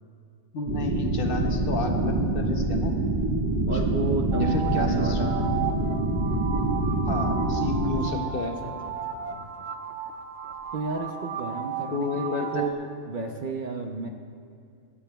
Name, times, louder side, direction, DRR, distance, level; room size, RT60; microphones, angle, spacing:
voice 1, 0.5-3.0 4.4-5.4 7.1-8.5 11.9-12.7, left 4 dB, 55° left, 4 dB, 0.8 m, -31 dB
sound 1, 0.7-8.0, right 2 dB, 40° right, 1.3 m, -26 dB
voice 2, 3.7-5.5 8.4-9.7 10.7-14.1, right 4 dB, 55° right, 3 dB, 0.6 m, -32 dB
sound 2, 4.3-12.7, right 7 dB, 90° right, 0.9 m, -34 dB
23.5 x 7.9 x 2.2 m, 2.4 s
omnidirectional pair, 1.3 m